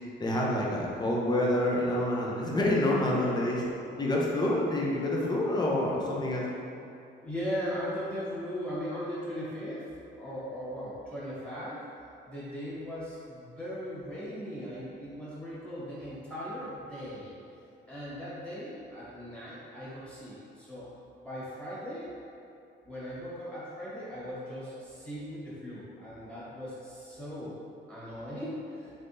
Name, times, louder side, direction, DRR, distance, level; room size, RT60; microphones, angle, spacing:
voice 1, 0.2-3.6 4.0-6.4, left 1 dB, 20° left, -3 dB, 0.6 m, -27 dB
voice 2, 7.2-9.9 10.2-11.9 12.2-17.3 17.9-22.1 22.8-27.6 27.9-28.9, equal, 5° left, -10 dB, 1.4 m, -38 dB
3.6 x 3.3 x 2.6 m, 2.6 s
cardioid pair, 90°, 20 cm